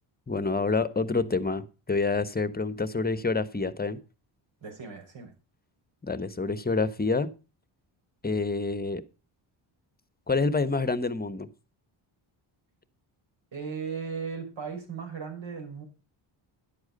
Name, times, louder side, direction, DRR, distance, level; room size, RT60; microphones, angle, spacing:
voice 1, 0.3-4.0 6.0-7.3 8.2-9.0 10.3-11.5, left 3 dB, 20° left, 14 dB, 1.1 m, -27 dB
voice 2, 4.6-5.3 13.5-15.8, right 6 dB, 65° right, 4 dB, 5.9 m, -36 dB
11.0 x 8.0 x 5.4 m, 0.32 s
cardioid pair, 90°, 50 cm